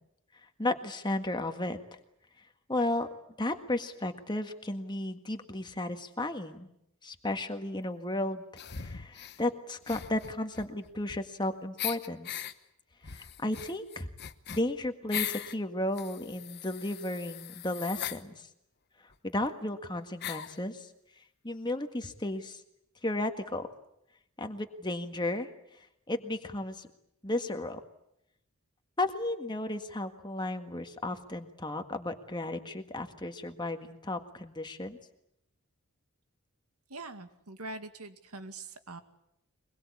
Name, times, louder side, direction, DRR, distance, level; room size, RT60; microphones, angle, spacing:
voice 1, 0.6-1.8 2.7-3.1 3.4-6.7 7.0-8.4 8.7-12.4 13.1-14.1 14.5-18.5 19.2-20.9 21.4-22.6 23.0-23.7 24.4-26.9 27.2-27.8 29.0-35.0, left 1 dB, 20° left, 6 dB, 1.7 m, -34 dB
sound 1, 8.6-9.4 9.8-11.4 11.8-12.5 13.0-15.6 15.9-18.2 19.1-19.2 19.4-19.5 20.2-20.6, left 10 dB, 50° left, 1.0 m, -39 dB
voice 2, 36.9-39.0, right 2 dB, 85° right, 8 dB, 2.2 m, -43 dB
23.5 x 22.0 x 8.5 m, 0.79 s
head